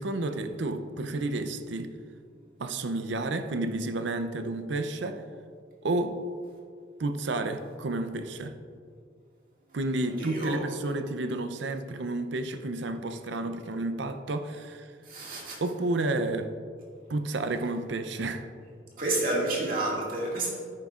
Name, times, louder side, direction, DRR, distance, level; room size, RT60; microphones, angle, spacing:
voice 1, 0.0-1.9 2.6-5.2 5.8-6.2 7.0-8.5 9.7-14.9 15.6-16.5 17.1-18.5, right 2 dB, 80° right, 8 dB, 0.6 m, -31 dB
voice 2, 10.0-10.6 15.1-15.6 19.0-20.5, right 2 dB, 50° right, -4 dB, 2.0 m, -29 dB
10.5 x 9.2 x 2.4 m, 2.2 s
head